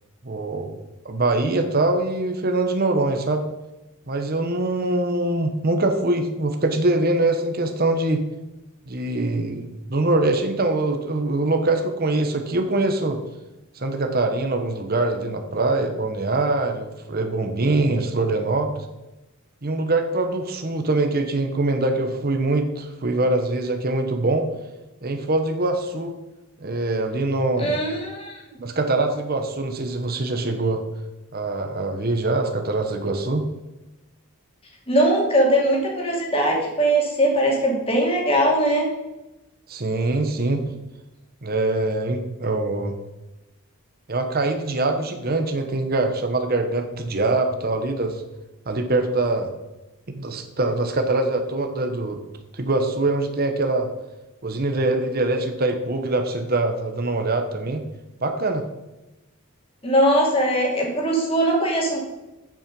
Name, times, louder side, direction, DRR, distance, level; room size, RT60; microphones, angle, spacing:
voice 1, 0.2-0.7 1.0-3.4 4.1-8.2 8.9-13.2 13.7-18.9 19.6-24.5 25.0-26.1 26.6-27.8 28.6-30.8 31.3-33.4 39.7-40.7 41.4-42.9 44.1-48.2 48.7-49.5 50.1-52.2 52.5-53.9 54.4-57.8 58.2-58.6, right 2 dB, 40° right, 6 dB, 1.0 m, -23 dB
voice 2, 27.6-28.4 34.9-38.9 59.8-62.0, right 1 dB, 25° left, -1 dB, 2.6 m, -20 dB
8.7 x 7.5 x 5.3 m, 1.0 s
head